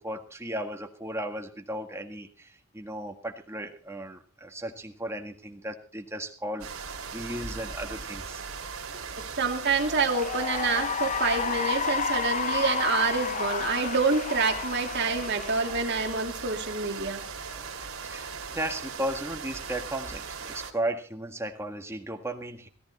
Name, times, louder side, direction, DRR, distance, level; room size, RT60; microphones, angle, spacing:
voice 1, 0.0-8.4 18.1-22.7, right 1 dB, 10° right, 4 dB, 1.7 m, -35 dB
sound 1, 6.6-20.7, right 5 dB, 70° right, 2.6 m, -39 dB
voice 2, 9.4-17.2, right 4 dB, 50° right, 3 dB, 2.5 m, -27 dB
Cheering / Applause, 9.7-16.4, left 6 dB, 35° left, 0.6 m, -31 dB
17.0 x 14.0 x 4.3 m, 0.40 s
head